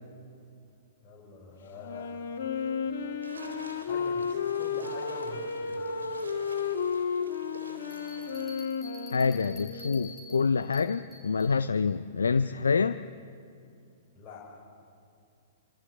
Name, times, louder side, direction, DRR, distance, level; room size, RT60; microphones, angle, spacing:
voice 1, 1.0-2.1 3.8-5.8 14.1-14.5, left 4 dB, 25° left, -6 dB, 6.2 m, -45 dB
Wind instrument woodwind instrument, 1.8-10.4, left 6 dB, 55° left, 3.0 m, -33 dB
sound 1, 3.2-8.5, right 2 dB, 80° right, 3.6 m, -49 dB
sound 2, 7.9-11.6, left 2 dB, 5° left, 5.2 m, -49 dB
voice 2, 9.1-13.0, left 5 dB, 75° left, 12 dB, 0.6 m, -26 dB
26.5 x 26.0 x 8.1 m, 2.5 s
figure-of-eight pair, 110°, 0 cm